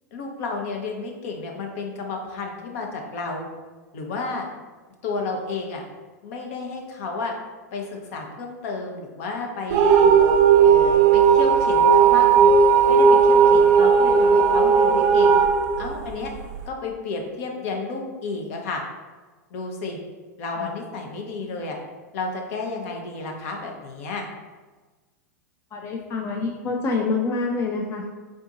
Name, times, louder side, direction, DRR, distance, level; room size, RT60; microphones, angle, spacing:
voice 1, 0.1-3.5 3.9-4.4 5.0-5.8 6.2-7.3 7.7-10.1 10.6-12.5 12.9-15.3 15.8-16.3 16.7-18.8 19.5-20.0 20.4-21.8 22.1-24.3, left 3 dB, 60° left, 1 dB, 0.8 m, -31 dB
sound 1, 9.7-16.6, right 6 dB, 50° right, 0.5 m, -16 dB
voice 2, 25.7-28.2, left 3 dB, 30° left, 0 dB, 0.4 m, -26 dB
3.7 x 2.6 x 3.8 m, 1.3 s
hypercardioid pair, 100°, 9 cm